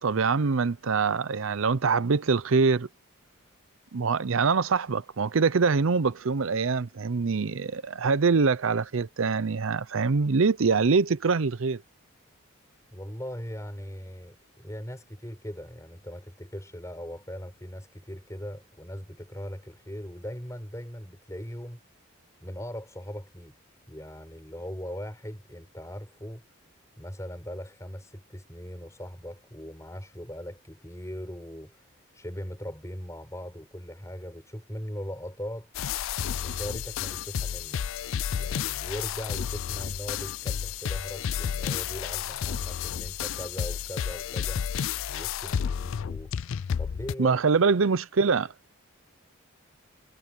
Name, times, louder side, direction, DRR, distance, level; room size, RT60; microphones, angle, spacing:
voice 1, 0.0-2.9 3.9-11.8 47.2-48.5, right 4 dB, 70° right, 0.6 m, -24 dB
voice 2, 12.9-21.8 22.4-23.5 23.9-26.4 27.0-31.8 32.1-35.7 36.4-37.9 38.3-44.7 45.1-46.3 46.8-47.4, equal, 15° left, 5.1 m, -39 dB
sound 1, 35.7-47.1, left 8 dB, 65° left, 0.4 m, -31 dB
head